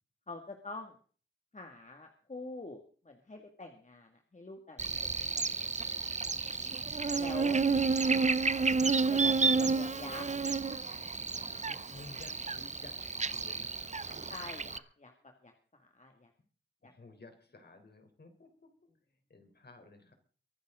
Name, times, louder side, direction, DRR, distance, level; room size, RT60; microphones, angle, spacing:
voice 1, 0.3-1.0 1.5-6.6 7.2-7.6 9.1-10.3 14.3-15.1 15.4-16.3 16.8-16.9, left 2 dB, 40° left, 3 dB, 2.1 m, -46 dB
Buzz, 4.8-14.8, right 4 dB, 35° right, 0.6 m, -31 dB
voice 2, 7.0-7.6 9.5-9.8 11.6-14.2 16.8-18.7 19.3-20.1, left 3 dB, 55° left, 6 dB, 3.7 m, -54 dB
23.5 x 11.5 x 3.8 m, 0.41 s
wide cardioid pair, 95°, 20 cm